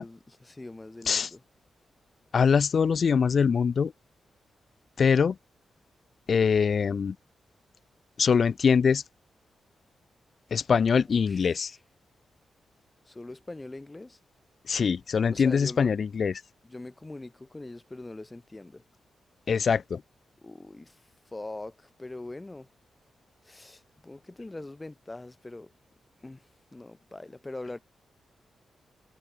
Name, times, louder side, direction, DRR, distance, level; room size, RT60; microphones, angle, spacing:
voice 1, 0.0-1.4 10.9-11.8 13.1-14.2 15.3-16.0 16.6-18.8 20.4-22.7 23.4-25.7 26.2-27.8, left 2 dB, 20° left, 3.5 m, -42 dB
voice 2, 2.3-3.9 5.0-5.4 6.3-7.1 8.2-9.0 10.5-11.7 14.7-16.3 19.5-20.0, left 6 dB, 60° left, 1.2 m, -23 dB
cardioid pair, 75°, 0 cm